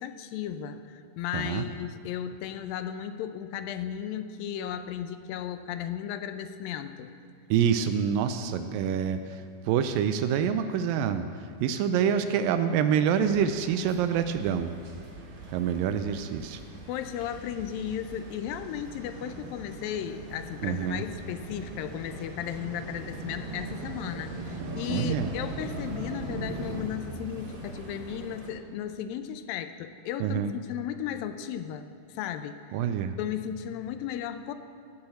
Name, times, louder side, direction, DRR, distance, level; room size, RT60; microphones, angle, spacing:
voice 1, 0.0-7.1 16.9-32.6 33.2-34.5, left 10 dB, 80° left, 9 dB, 2.1 m, -35 dB
voice 2, 1.3-1.7 7.5-11.3 11.6-14.7 15.5-16.6 20.6-21.0 24.9-25.3 30.2-30.5 32.7-33.2, right 8 dB, 85° right, 9 dB, 2.0 m, -26 dB
sound 1, 13.1-26.8, right 2 dB, 65° right, 3.1 m, -41 dB
sound 2, 13.7-28.5, right 1 dB, 45° right, 2.2 m, -48 dB
16.5 x 7.2 x 7.9 m, 2.3 s
omnidirectional pair, 4.5 m